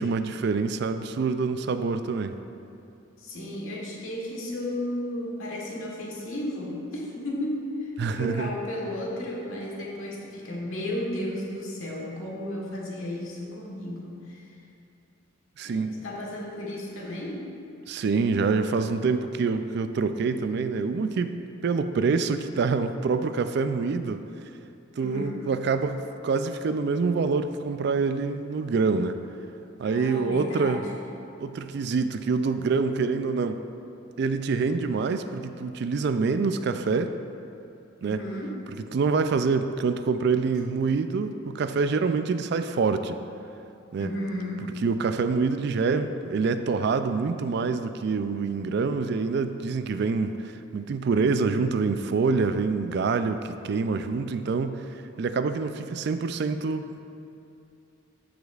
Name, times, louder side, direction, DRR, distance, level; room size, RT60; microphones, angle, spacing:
voice 1, 0.0-2.4 8.0-8.5 15.6-16.0 17.9-24.2 25.0-29.2 29.8-30.8 31.4-33.6 34.2-37.1 38.0-38.2 38.9-43.2 43.9-44.1 44.6-54.8 55.2-57.0, right 4 dB, 55° right, 9 dB, 0.3 m, -26 dB
voice 2, 3.2-14.6 15.6-17.5 25.0-25.5 29.8-31.1 38.0-38.6 44.0-44.7, left 1 dB, 80° left, -3 dB, 1.4 m, -34 dB
14.0 x 5.1 x 2.4 m, 2.7 s
head